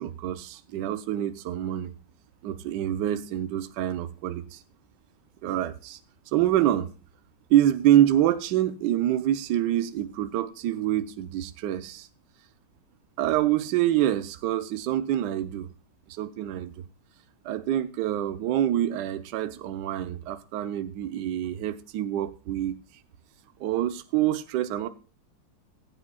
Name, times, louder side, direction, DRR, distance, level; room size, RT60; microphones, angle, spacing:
voice 1, 0.0-1.9 2.4-4.6 5.4-6.0 6.3-6.9 7.5-12.1 13.2-15.7 16.1-16.9 17.4-22.8 23.6-24.9, right 12 dB, 70° right, 1.3 m, -26 dB
20.0 x 8.6 x 2.3 m
omnidirectional pair, 2.0 m